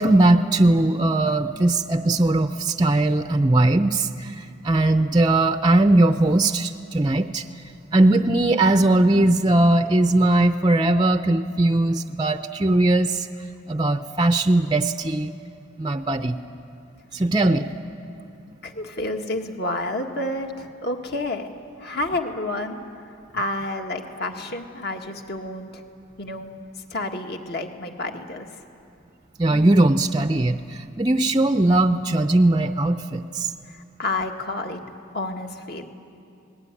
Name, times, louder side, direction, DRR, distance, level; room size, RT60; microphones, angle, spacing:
voice 1, 0.0-7.4 7.9-13.3 13.7-15.3 15.8-16.4 17.1-17.7 29.4-33.5, right 2 dB, 20° right, 7 dB, 0.6 m, -19 dB
voice 2, 18.6-21.5 21.8-22.8 23.3-25.8 26.2-26.5 26.9-28.5 33.7-34.8 35.1-35.9, left 2 dB, 50° left, 3 dB, 1.9 m, -29 dB
29.0 x 20.0 x 9.9 m, 2.5 s
head